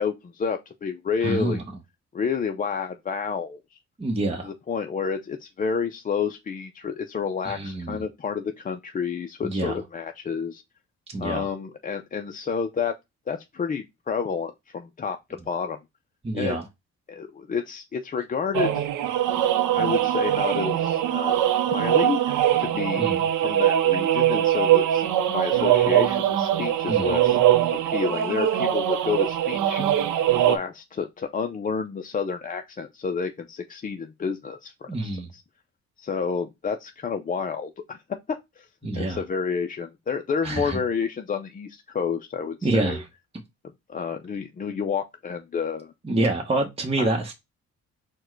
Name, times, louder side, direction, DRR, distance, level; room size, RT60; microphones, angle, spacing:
voice 1, 0.0-1.6 2.1-3.8 4.4-10.6 11.2-13.0 13.3-15.2 15.5-15.8 16.3-16.6 17.1-18.9 19.7-25.0 25.3-27.4 27.9-29.8 30.5-35.4 36.0-38.0 38.6-38.7 39.0-43.0 43.9-45.9 47.0-47.1, left 6 dB, 30° left, 0.4 m, -30 dB
voice 2, 1.2-1.6 4.0-4.5 7.4-8.0 9.4-9.8 11.1-11.5 16.2-16.6 23.0-23.2 26.9-27.1 34.9-35.3 38.8-39.2 40.4-40.8 42.6-43.0 46.0-47.3, right 2 dB, 20° right, 0.9 m, -26 dB
sound 1, 18.5-30.6, right 11 dB, 85° right, 0.7 m, -22 dB
4.4 x 2.2 x 4.4 m
cardioid pair, 90°, 30 cm